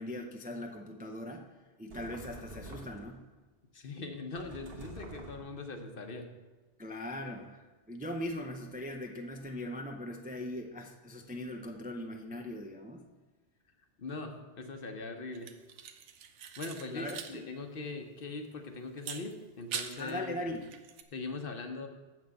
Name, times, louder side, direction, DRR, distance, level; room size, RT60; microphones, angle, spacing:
voice 1, 0.0-1.5 1.8-3.2 6.8-13.0 16.9-17.4 20.0-20.6, left 1 dB, 10° right, 3 dB, 0.4 m, -40 dB
sound 1, 1.9-3.2 4.4-5.6, right 1 dB, 55° right, 1.4 m, -47 dB
voice 2, 3.7-6.3 14.0-15.5 16.6-20.3 21.1-21.9, left 3 dB, 55° left, 5 dB, 1.0 m, -41 dB
sound 2, 15.3-17.4 17.6-17.7 19.0-20.1 20.6-21.0, right 8 dB, 90° right, 1.0 m, -43 dB
7.1 x 6.2 x 7.7 m, 1.2 s
omnidirectional pair, 1.2 m